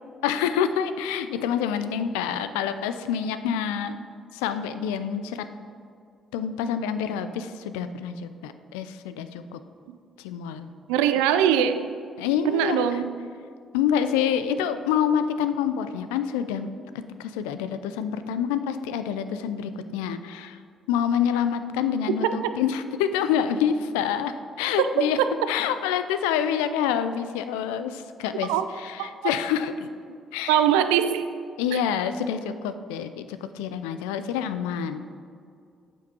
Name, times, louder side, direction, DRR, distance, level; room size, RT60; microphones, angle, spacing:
voice 1, 0.2-4.0 4.3-5.5 6.3-9.6 10.2-10.7 12.2-13.0 13.7-16.7 17.2-20.6 20.9-25.2 25.5-28.5 28.8-29.9 30.3-30.6 31.6-35.1, left 8 dB, 75° left, 11 dB, 0.3 m, -27 dB
voice 2, 10.9-11.9 12.5-13.1 22.1-22.2 28.5-28.7 29.0-29.1 30.5-31.3 31.7-31.8, right 9 dB, 75° right, 10 dB, 0.3 m, -22 dB
9.0 x 8.0 x 2.8 m, 2.3 s
hypercardioid pair, 45°, 0 cm